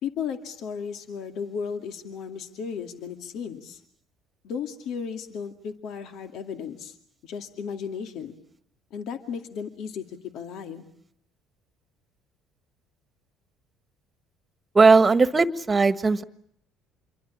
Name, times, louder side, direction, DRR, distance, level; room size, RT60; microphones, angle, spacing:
voice 1, 0.0-3.8 4.4-7.0 7.2-8.3 8.9-10.9, left 6 dB, 65° left, 7 dB, 2.3 m, -35 dB
voice 2, 14.7-16.2, right 4 dB, 25° right, 13 dB, 1.6 m, -18 dB
27.5 x 23.5 x 8.7 m, 0.68 s
hypercardioid pair, 65°, 0 cm